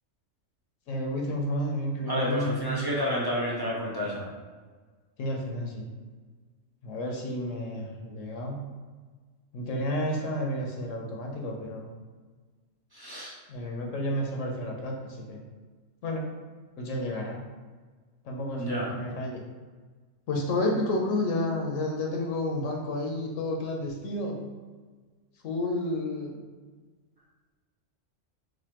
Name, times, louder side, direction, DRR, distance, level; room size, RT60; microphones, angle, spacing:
voice 1, 0.9-2.6 5.2-5.9 6.8-8.6 9.5-11.9 13.5-15.4 16.0-16.3 16.8-17.4 18.2-19.4 20.3-24.4 25.4-26.4, left 1 dB, 75° left, 0 dB, 1.0 m, -31 dB
voice 2, 2.1-4.2 12.9-13.3 18.5-18.9, equal, 30° right, -5 dB, 0.5 m, -30 dB
4.1 x 2.5 x 2.9 m, 1.4 s
omnidirectional pair, 1.3 m